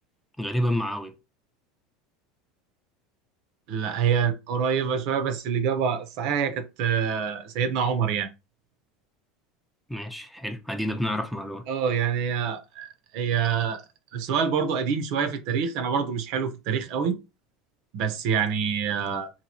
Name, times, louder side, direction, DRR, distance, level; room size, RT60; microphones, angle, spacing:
voice 1, 0.4-1.1 9.9-11.6, equal, ahead, 0.5 m, -29 dB
voice 2, 3.7-8.3 11.7-13.8 14.1-17.2 17.9-19.3, right 7 dB, 65° right, 0.6 m, -26 dB
2.9 x 2.6 x 2.7 m
supercardioid pair, 105°, 0 cm